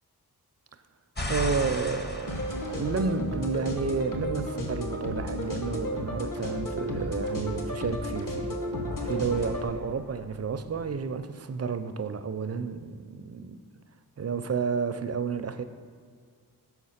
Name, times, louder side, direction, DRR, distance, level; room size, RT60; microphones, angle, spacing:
sound 1, 1.2-3.6 8.9-11.0, left 1 dB, 25° left, 0.7 m, -36 dB
voice 1, 1.3-8.6 9.0-13.6 14.2-15.6, right 5 dB, 40° right, 10 dB, 0.4 m, -31 dB
sound 2, 2.3-9.7, left 1 dB, 55° left, 1.1 m, -33 dB
6.5 x 4.6 x 5.6 m, 2.1 s
wide cardioid pair, 65°, 39 cm